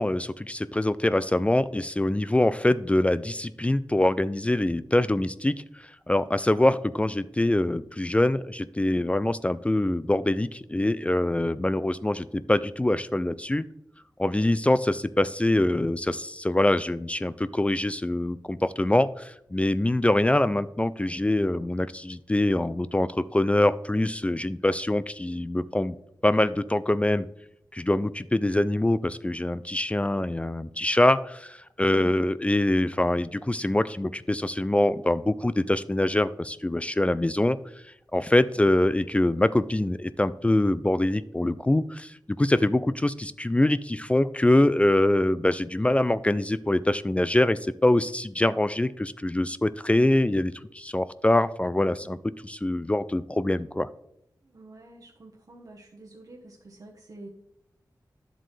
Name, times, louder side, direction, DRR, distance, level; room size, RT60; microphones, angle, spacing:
voice 1, 0.0-13.7 14.2-26.0 26.2-27.3 27.7-37.6 38.1-52.2 52.4-53.9, left 1 dB, 15° left, 15 dB, 0.3 m, -24 dB
voice 2, 11.7-12.2 54.4-57.3, right 2 dB, 55° right, -1 dB, 1.2 m, -48 dB
10.5 x 7.5 x 3.3 m, 0.79 s
wide cardioid pair, 75°, 8 cm